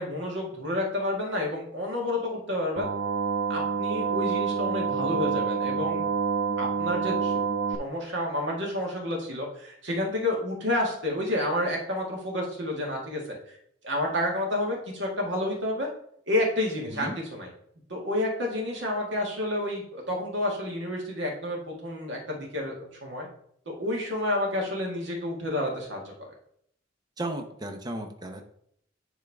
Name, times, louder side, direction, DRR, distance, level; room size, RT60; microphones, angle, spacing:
voice 1, 0.0-2.9 3.5-6.0 6.6-7.4 7.8-13.2 13.8-15.9 16.3-17.5 17.9-23.3 23.7-26.1, left 1 dB, 75° right, -1 dB, 2.1 m, -30 dB
sound 1, 2.8-7.8, right 5 dB, 55° right, 0.5 m, -27 dB
voice 2, 27.2-28.4, right 1 dB, 20° right, 4 dB, 0.9 m, -34 dB
10.0 x 3.7 x 3.6 m, 0.67 s
head